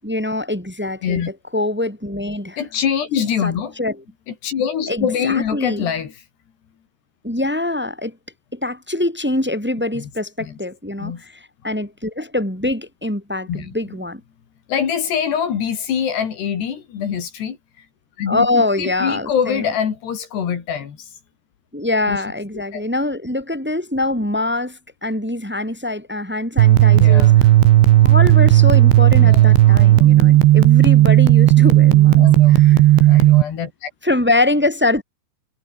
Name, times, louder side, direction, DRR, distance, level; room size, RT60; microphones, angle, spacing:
voice 1, 0.0-1.2 1.5-2.6 3.4-4.0 4.9-5.9 7.2-8.2 8.5-14.2 18.3-19.6 21.7-27.3 27.9-32.8 34.0-35.0, left 2 dB, ahead, 4.6 m, -24 dB
voice 2, 2.6-3.8 4.3-6.1 9.9-10.1 10.4-10.6 11.0-11.2 13.5-14.0 14.7-17.6 18.2-21.1 22.1-22.2 22.7-22.8 26.9-27.3 29.2-30.2 32.2-32.7 33.1-33.9, left 8 dB, 70° left, 5.2 m, -24 dB
sound 1, 26.6-33.4, right 14 dB, 80° right, 3.6 m, -11 dB
omnidirectional pair, 5.1 m